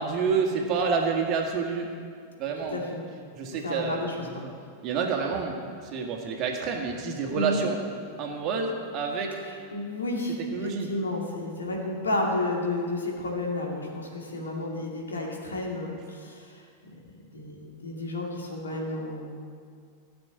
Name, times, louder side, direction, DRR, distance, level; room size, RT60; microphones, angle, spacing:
voice 1, 0.0-1.9 2.4-2.8 3.3-4.5 4.8-5.6 5.8-7.8 8.2-9.4 10.5-10.9, right 5 dB, 35° right, 1 dB, 1.9 m, -28 dB
voice 2, 2.7-3.0 3.6-4.4 7.3-7.6 9.4-16.6 17.3-19.4, left 1 dB, 70° left, -1 dB, 2.4 m, -31 dB
15.0 x 6.2 x 8.1 m, 2.1 s
figure-of-eight pair, 90°, 0 cm